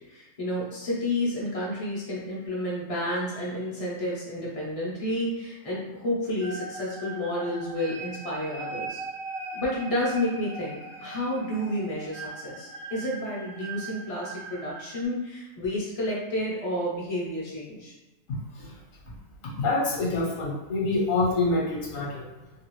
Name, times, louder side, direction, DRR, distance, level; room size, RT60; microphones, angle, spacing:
voice 1, 0.1-9.0 9.5-17.9, left 1 dB, 30° left, -5 dB, 0.7 m, -30 dB
sound 1, 6.4-15.0, right 2 dB, 85° right, 0.5 m, -40 dB
voice 2, 18.3-18.8 19.6-22.2, left 3 dB, 60° left, -4 dB, 1.2 m, -26 dB
2.9 x 2.5 x 3.0 m, 1.1 s
omnidirectional pair, 1.7 m